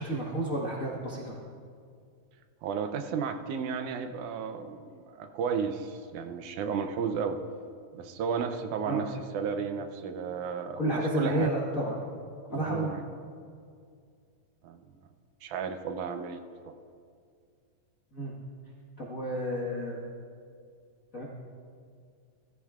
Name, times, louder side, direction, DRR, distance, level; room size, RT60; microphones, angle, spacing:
voice 1, 0.0-1.4 8.8-9.0 10.7-12.0 12.5-12.9 18.1-18.3 19.0-20.0 21.1-21.2, right 1 dB, 40° left, -7 dB, 1.2 m, -31 dB
voice 2, 2.6-7.4 7.9-11.5 12.5-13.0 14.6-14.8 15.4-16.7, right 6 dB, 80° right, 7 dB, 2.1 m, -33 dB
17.0 x 14.5 x 2.4 m, 2.2 s
omnidirectional pair, 3.5 m